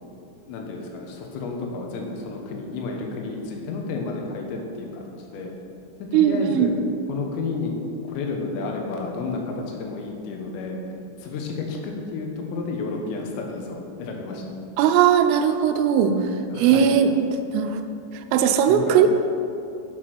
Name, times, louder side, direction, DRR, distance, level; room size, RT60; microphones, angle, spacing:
voice 1, 0.5-5.5 6.1-6.7 7.1-7.7 8.0-10.8 11.2-14.4 16.5-17.0 18.7-19.0, left 3 dB, 85° left, 1 dB, 4.0 m, -31 dB
voice 2, 6.1-6.7 14.8-16.1 16.6-17.1 17.5-17.8 18.3-19.1, right 8 dB, 85° right, 7 dB, 3.3 m, -18 dB
9.7 x 8.4 x 6.0 m, 2.6 s
omnidirectional pair, 5.8 m